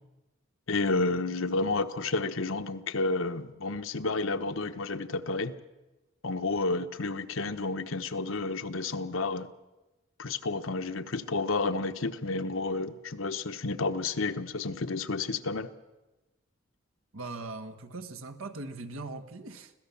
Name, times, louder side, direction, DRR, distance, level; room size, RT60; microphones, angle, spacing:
voice 1, 0.7-5.6 6.2-9.5 10.2-15.7, left 3 dB, 80° left, 9 dB, 1.1 m, -31 dB
voice 2, 17.1-19.7, right 3 dB, 90° right, 6 dB, 1.5 m, -40 dB
25.5 x 17.0 x 7.1 m, 1.1 s
head